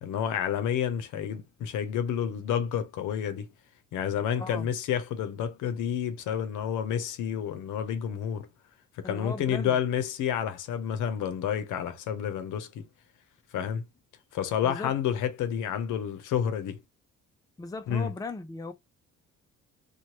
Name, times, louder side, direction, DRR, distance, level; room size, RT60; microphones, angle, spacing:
voice 1, 0.0-3.5 3.9-8.5 9.0-12.9 13.5-13.8 14.3-16.8 17.9-18.1, left 8 dB, 85° left, 0.7 m, -30 dB
voice 2, 4.4-4.7 9.0-9.8 14.6-14.9 17.6-18.7, left 3 dB, 10° left, 0.4 m, -38 dB
3.0 x 2.2 x 2.8 m
cardioid pair, 90°, 30 cm